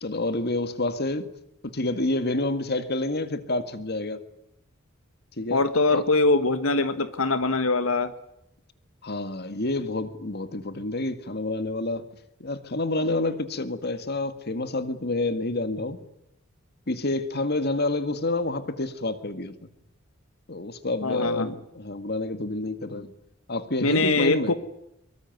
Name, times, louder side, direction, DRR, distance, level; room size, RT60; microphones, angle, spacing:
voice 1, 0.0-1.3 1.7-4.2 5.4-5.6 5.9-6.0 9.0-12.0 12.4-16.0 16.9-19.5 20.5-23.1 23.5-24.5, left 2 dB, 50° left, 11 dB, 2.0 m, -28 dB
voice 2, 5.5-8.1 21.0-21.5 23.8-24.5, left 3 dB, 85° left, 11 dB, 1.5 m, -23 dB
24.5 x 23.5 x 9.5 m, 0.81 s
head